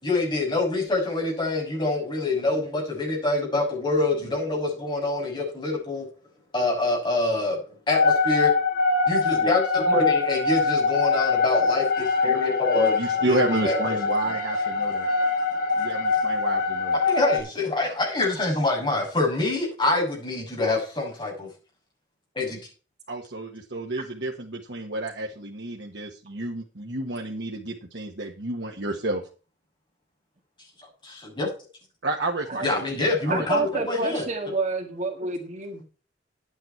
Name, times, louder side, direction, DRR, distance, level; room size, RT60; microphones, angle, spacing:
voice 1, 0.0-6.1 6.5-7.6 7.9-8.5 9.1-14.0 14.2-14.3 15.7-15.9 17.0-21.5 22.3-22.6 31.0-31.5 32.6-34.2, left 2 dB, 25° left, -2 dB, 6.6 m, -26 dB
sound 1, 7.9-17.4, left 4 dB, 55° left, 2.5 m, -23 dB
voice 2, 13.0-15.1 15.8-17.0 23.1-29.2 32.0-32.8 33.2-33.6, right 2 dB, 70° right, 1 dB, 1.4 m, -30 dB
voice 3, 32.5-32.8 33.3-35.8, right 3 dB, 40° right, 4 dB, 1.9 m, -28 dB
10.5 x 9.1 x 4.6 m, 0.37 s
head